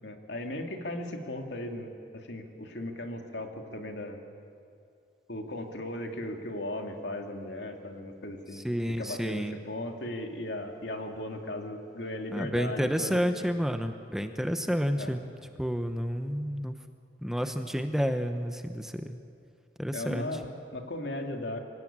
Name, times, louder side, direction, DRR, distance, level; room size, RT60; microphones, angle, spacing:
voice 1, 0.0-4.2 5.3-8.6 9.0-13.2 15.0-15.1 19.9-21.6, left 1 dB, 80° left, 3 dB, 2.4 m, -37 dB
voice 2, 8.5-9.6 12.3-15.3 15.6-16.7 17.2-19.2 19.8-20.4, equal, 5° right, 7 dB, 0.8 m, -30 dB
25.0 x 17.0 x 8.8 m, 2.5 s
head